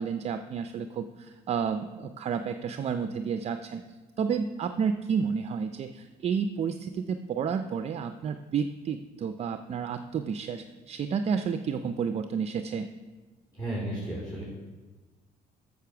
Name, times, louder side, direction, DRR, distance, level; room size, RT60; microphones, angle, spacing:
voice 1, 0.0-3.8 4.2-12.9, right 6 dB, 40° right, 9 dB, 0.4 m, -31 dB
voice 2, 13.5-14.4, right 1 dB, 20° left, -7 dB, 3.2 m, -33 dB
8.2 x 6.7 x 5.9 m, 1.3 s
cardioid pair, 110°, 17 cm